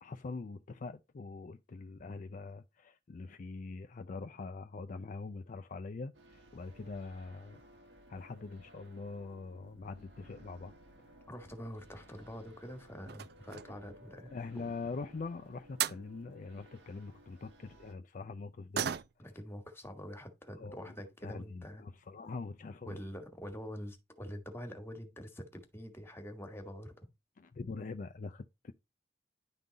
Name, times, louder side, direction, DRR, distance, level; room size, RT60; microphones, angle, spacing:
voice 1, 0.0-7.6 8.1-10.7 14.3-18.9 20.6-20.9 21.2-23.0 27.4-28.7, left 3 dB, 45° left, 0.4 m, -43 dB
sound 1, 6.1-17.9, equal, 85° right, 1.6 m, -58 dB
voice 2, 11.3-14.7 19.2-21.8 22.8-26.9, equal, 15° left, 1.4 m, -45 dB
sound 2, 12.1-12.5 13.0-13.9 15.4-15.5 15.8-16.1 18.7-19.4 19.8-19.9 20.3-20.4 21.2-21.3 21.6-21.7 22.2-22.5 22.7-22.8 23.1-23.2, right 9 dB, 65° right, 0.4 m, -38 dB
10.5 x 3.8 x 3.9 m
head